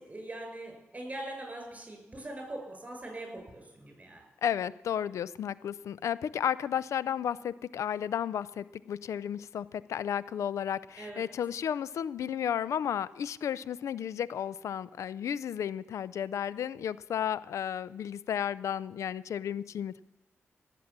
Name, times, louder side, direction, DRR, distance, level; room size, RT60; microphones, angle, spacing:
voice 1, 0.0-4.2 11.0-11.2, right 1 dB, 25° right, 2 dB, 6.5 m, -42 dB
voice 2, 4.4-20.0, left 9 dB, 80° left, 19 dB, 0.4 m, -33 dB
18.5 x 7.6 x 7.3 m, 1.0 s
cardioid pair, 55°, 5 cm